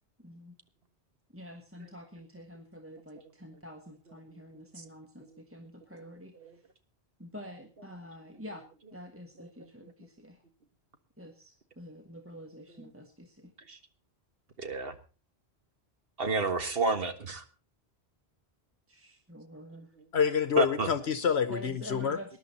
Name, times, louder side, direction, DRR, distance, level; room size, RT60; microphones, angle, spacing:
voice 1, 0.2-0.6 1.3-6.3 7.2-8.6 8.9-10.4 11.2-13.5 18.9-19.9 21.5-22.4, equal, 10° right, 3 dB, 1.6 m, -47 dB
voice 2, 14.6-14.9 16.2-17.4 20.6-20.9, right 3 dB, 60° right, 8 dB, 1.7 m, -30 dB
voice 3, 20.1-22.2, left 7 dB, 70° left, 12 dB, 1.2 m, -27 dB
20.0 x 11.0 x 4.1 m, 0.34 s
omnidirectional pair, 1.1 m